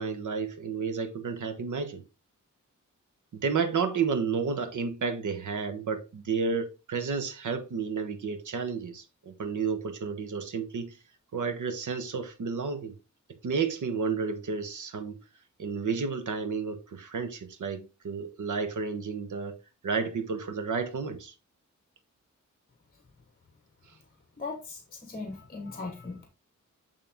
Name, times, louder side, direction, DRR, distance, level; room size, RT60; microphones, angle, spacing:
voice 1, 0.0-2.0 3.3-11.0 11.3-12.9 13.4-15.2 15.6-19.6 19.8-21.3 23.9-24.0, right 5 dB, 80° right, 1.2 m, -31 dB
voice 2, 24.4-26.3, left 3 dB, 30° left, 1.3 m, -39 dB
9.3 x 3.6 x 3.6 m
wide cardioid pair, 115°, 30 cm